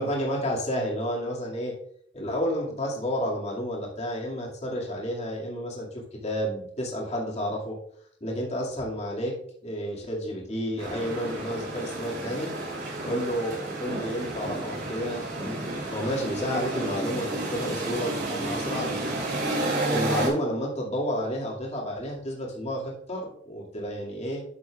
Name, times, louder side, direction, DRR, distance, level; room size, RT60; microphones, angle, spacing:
voice 1, 0.0-1.8 2.1-7.8 8.2-9.4 9.6-12.5 13.0-15.6 15.9-19.2 19.9-24.4, equal, 40° left, -3 dB, 2.3 m, -31 dB
sound 1, 10.8-20.3, right 2 dB, 65° right, 3.3 m, -31 dB
11.5 x 7.4 x 2.4 m, 0.65 s
head